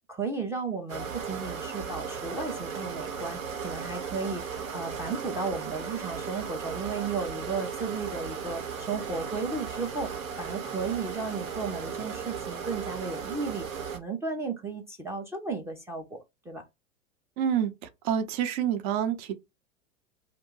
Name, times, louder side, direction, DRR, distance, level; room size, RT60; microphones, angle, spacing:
voice 1, 0.1-10.1 10.4-16.2 16.5-16.6, right 4 dB, 5° right, 0.4 m, -34 dB
sound 1, 0.9-14.0, right 6 dB, 80° right, 1.0 m, -36 dB
voice 2, 17.4-19.3, right 9 dB, 50° right, 0.7 m, -28 dB
2.8 x 2.2 x 3.7 m
hypercardioid pair, 95°, 41 cm